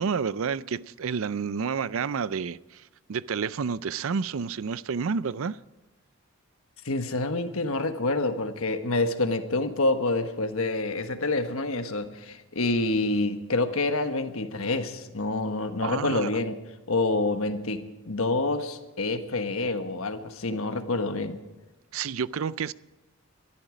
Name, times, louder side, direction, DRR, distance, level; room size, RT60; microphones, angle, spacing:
voice 1, 0.0-2.8 3.1-5.6 15.8-16.3 21.9-22.7, right 6 dB, 70° right, 0.5 m, -29 dB
voice 2, 6.8-16.6 16.9-21.4, left 2 dB, 70° left, 1.3 m, -27 dB
22.0 x 13.0 x 5.1 m
head